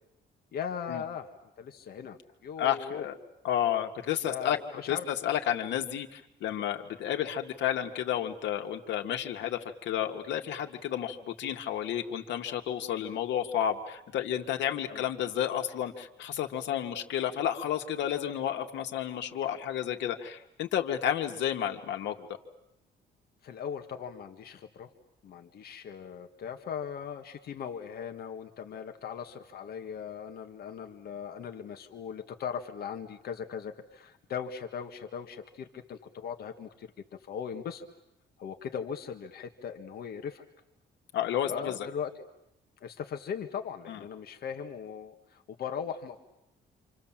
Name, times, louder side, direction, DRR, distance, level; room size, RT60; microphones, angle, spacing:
voice 1, 0.5-1.3 1.6-3.1 4.2-5.1 13.0-13.2 14.9-15.0 23.4-24.9 25.2-36.9 37.2-37.9 38.4-40.4 41.5-42.3 42.8-46.2, left 7 dB, 60° left, 5 dB, 1.9 m, -39 dB
voice 2, 2.6-3.2 3.4-4.6 4.9-22.3 41.1-41.8 43.9-44.0, left 10 dB, 90° left, 4 dB, 2.2 m, -31 dB
28.0 x 27.5 x 7.6 m, 0.82 s
cardioid pair, 170°, 18 cm